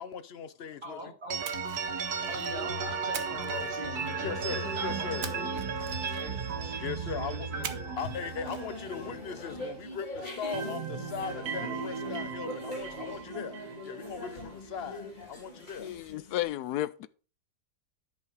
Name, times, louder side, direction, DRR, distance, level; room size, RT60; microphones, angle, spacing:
voice 1, 0.0-1.1 4.2-5.3 6.8-7.5 8.0-13.6 13.8-15.9, left 7 dB, 55° left, 0.7 m, -39 dB
voice 2, 0.8-1.4 2.3-4.3 4.7-5.6 6.1-6.4 7.2-8.0, right 1 dB, 40° right, 3.5 m, -42 dB
sound 1, 1.3-10.0 10.3-14.4, right 5 dB, 75° right, 1.8 m, -35 dB
Splash splatter, 1.4-2.6 3.1-4.3 5.2-6.5 7.6-8.1 8.4-8.6, right 8 dB, 60° right, 1.3 m, -42 dB
sound 2, 8.0-16.5, left 1 dB, 30° left, 3.4 m, -42 dB
voice 3, 15.8-17.1, left 14 dB, 80° left, 1.1 m, -33 dB
10.5 x 5.7 x 4.9 m
omnidirectional pair, 1.7 m